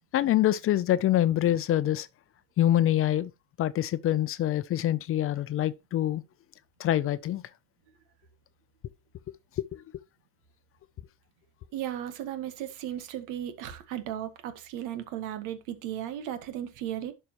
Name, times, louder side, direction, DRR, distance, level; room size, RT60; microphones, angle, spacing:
voice 1, 0.1-2.1 2.6-3.3 3.6-6.2 6.8-7.4 9.7-9.8, left 12 dB, 45° left, 0.6 m, -25 dB
voice 2, 11.7-17.1, right 11 dB, 85° right, 1.5 m, -35 dB
11.5 x 5.6 x 3.0 m
cardioid pair, 115°, 31 cm